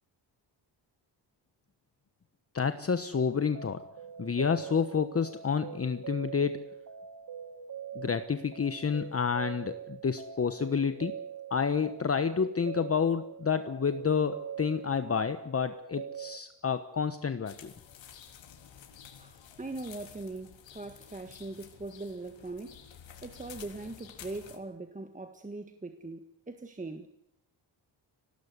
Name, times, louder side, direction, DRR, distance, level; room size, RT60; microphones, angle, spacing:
voice 1, 2.5-3.8 4.2-6.7 7.9-11.1 11.5-17.7, left 6 dB, 30° left, 1.2 m, -29 dB
sound 1, 3.1-16.4, right 7 dB, 45° right, 2.0 m, -44 dB
sound 2, 17.5-24.6, left 8 dB, 85° left, 3.7 m, -51 dB
voice 2, 19.2-22.8 23.2-27.1, right 2 dB, 15° right, 1.7 m, -41 dB
24.5 x 18.5 x 8.2 m
cardioid pair, 115°, 44 cm